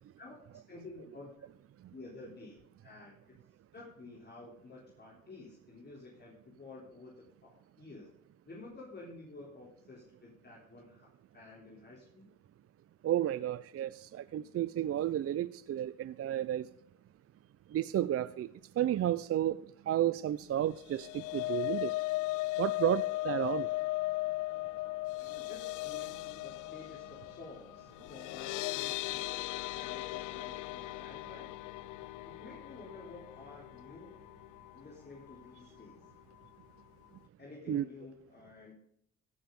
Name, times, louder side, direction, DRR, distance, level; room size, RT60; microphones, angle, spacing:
voice 1, 0.2-1.3 1.9-2.6 2.8-3.4 3.7-8.1 8.5-12.3 25.2-31.5 31.9-34.1 34.7-36.1 37.4-38.8, left 3 dB, 35° left, 3.6 m, -51 dB
voice 2, 13.0-16.7 17.7-18.5 18.8-21.9 22.6-23.7 37.7-37.8, right 12 dB, 50° right, 0.5 m, -32 dB
sound 1, 20.7-34.9 35.3-35.5 35.8-35.9, left 20 dB, 90° left, 0.5 m, -37 dB
16.5 x 6.8 x 5.3 m
cardioid pair, 90°, 30 cm